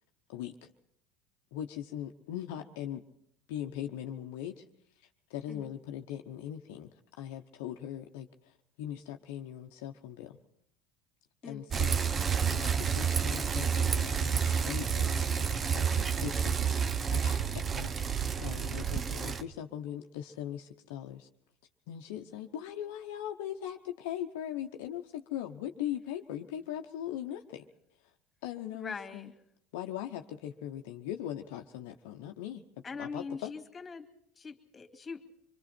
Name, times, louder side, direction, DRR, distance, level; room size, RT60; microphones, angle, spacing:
voice 1, 0.3-0.7 1.5-3.0 3.5-4.6 5.3-10.4 11.4-21.3 21.9-27.6 28.4-29.3 29.7-32.6 33.0-33.5, left 11 dB, 70° left, 4 dB, 0.9 m, -40 dB
Bicycle, 11.7-19.4, right 7 dB, 30° right, 0.9 m, -29 dB
voice 2, 28.7-29.3 32.8-34.1 34.4-35.2, left 5 dB, 25° left, 4 dB, 2.4 m, -42 dB
25.5 x 23.5 x 4.4 m, 0.71 s
hypercardioid pair, 85°, 0 cm